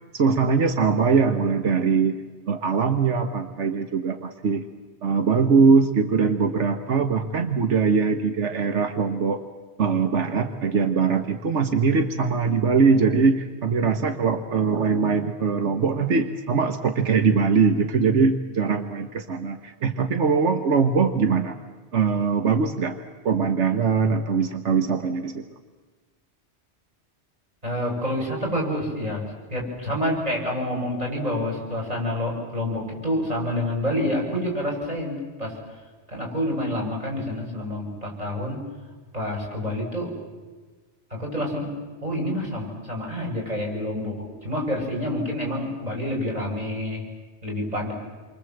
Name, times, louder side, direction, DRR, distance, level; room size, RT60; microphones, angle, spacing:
voice 1, 0.1-2.2 2.5-4.6 5.0-9.4 9.8-21.6 21.9-23.0 23.2-25.4, right 5 dB, 85° right, 7 dB, 1.5 m, -22 dB
voice 2, 27.6-35.6 36.1-38.6 39.1-40.1 41.1-41.7 42.0-47.0 47.4-47.9, left 1 dB, 35° right, -1 dB, 7.6 m, -28 dB
28.5 x 24.0 x 7.9 m, 1.4 s
omnidirectional pair, 1.2 m